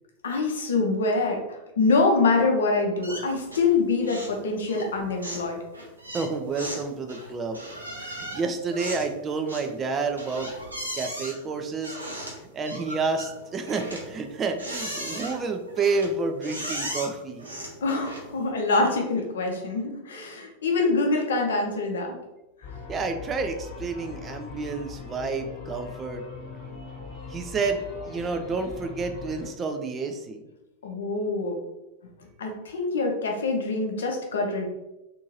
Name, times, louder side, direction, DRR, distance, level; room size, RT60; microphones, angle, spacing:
voice 1, 0.2-5.6 17.8-22.2 30.8-31.6 32.4-34.6, left 3 dB, 65° left, 2 dB, 0.6 m, -25 dB
sound 1, 3.0-3.8 4.0-4.4 4.7-18.5, right 1 dB, 80° right, 0.7 m, -37 dB
voice 2, 6.1-7.6 8.0-10.5 10.9-12.0 12.5-17.5 22.9-26.2 27.3-30.5, right 4 dB, 25° right, 6 dB, 0.4 m, -29 dB
sound 2, 22.6-29.5, left 5 dB, 35° left, 1.0 m, -41 dB
2.7 x 2.6 x 2.8 m, 0.96 s
figure-of-eight pair, 90°, 0 cm